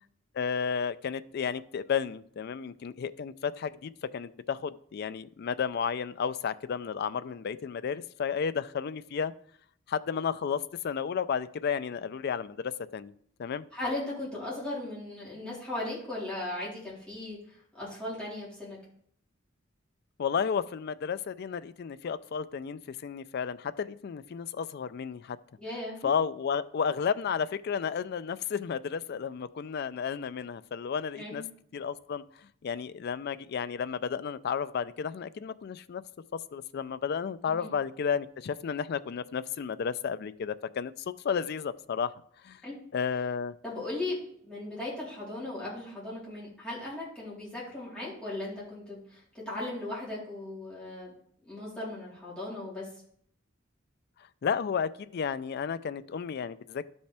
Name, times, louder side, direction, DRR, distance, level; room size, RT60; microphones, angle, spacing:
voice 1, 0.3-9.3 9.9-13.1 13.4-13.6 20.2-25.4 26.0-31.4 31.7-32.2 32.6-36.0 36.5-42.1 42.4-42.6 42.9-43.5 54.4-56.8, left 6 dB, 50° left, 0.3 m, -32 dB
voice 2, 13.7-17.4 17.7-18.8 25.6-26.1 31.2-31.4 37.5-37.7 42.6-42.8 43.6-51.1 51.4-52.9, left 2 dB, 5° left, 3.7 m, -37 dB
12.0 x 5.4 x 3.4 m
head